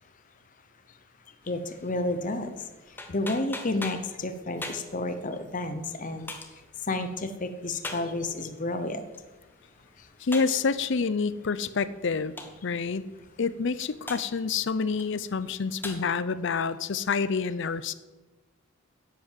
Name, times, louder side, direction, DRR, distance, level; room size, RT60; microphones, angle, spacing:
sound 1, 1.4-16.0, left 2 dB, 10° left, 1.2 m, -45 dB
voice 1, 1.5-2.6 3.1-6.3 6.9-9.0, left 2 dB, 40° left, 9 dB, 0.9 m, -31 dB
voice 2, 10.2-12.3 12.6-13.1 13.4-17.9, left 5 dB, 60° left, 16 dB, 0.5 m, -28 dB
10.5 x 8.6 x 7.5 m, 1.2 s
head